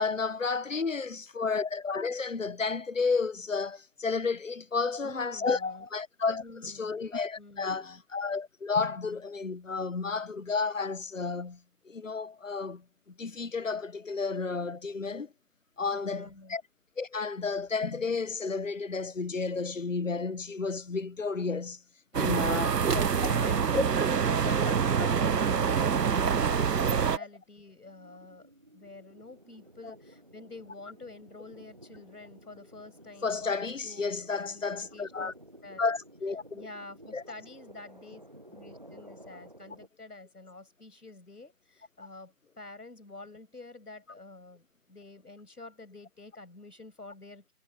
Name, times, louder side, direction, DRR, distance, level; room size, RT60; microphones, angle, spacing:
voice 1, 0.0-11.6 11.8-12.8 13.2-15.3 15.8-16.6 17.0-21.8 22.1-23.3 23.7-23.8 24.5-25.1 29.8-29.9 33.2-35.3 35.8-36.6 37.1-37.2, left 4 dB, 55° left, 0.9 m, -32 dB
voice 2, 5.0-5.9 6.4-8.0 15.9-16.6 22.4-35.3 35.6-35.8 36.5-38.2 38.5-47.5, left 2 dB, 75° left, 7.8 m, -48 dB
sound 1, 22.1-27.2, right 6 dB, 85° right, 0.8 m, -26 dB
sound 2, 27.9-39.9, right 1 dB, 30° right, 0.9 m, -54 dB
figure-of-eight pair, 165°, 47 cm